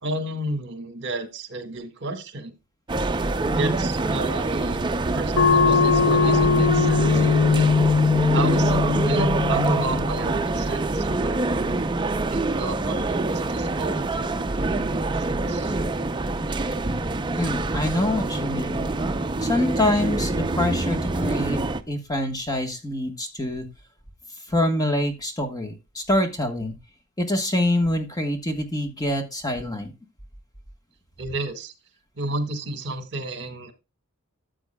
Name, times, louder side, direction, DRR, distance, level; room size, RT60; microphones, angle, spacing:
voice 1, 0.0-2.6 3.5-4.8 5.1-7.7 8.3-15.7 31.2-31.7 32.2-33.7, right 2 dB, 55° right, 8 dB, 1.7 m, -32 dB
sound 1, 2.9-21.8, right 2 dB, 20° right, 0.5 m, -25 dB
sound 2, 5.4-10.5, left 5 dB, 75° left, 0.7 m, -20 dB
voice 2, 17.4-18.8 19.4-21.6 21.9-23.6 24.5-26.7 27.2-29.9, left 1 dB, 15° left, 6 dB, 1.3 m, -25 dB
13.5 x 7.9 x 2.2 m, 0.25 s
head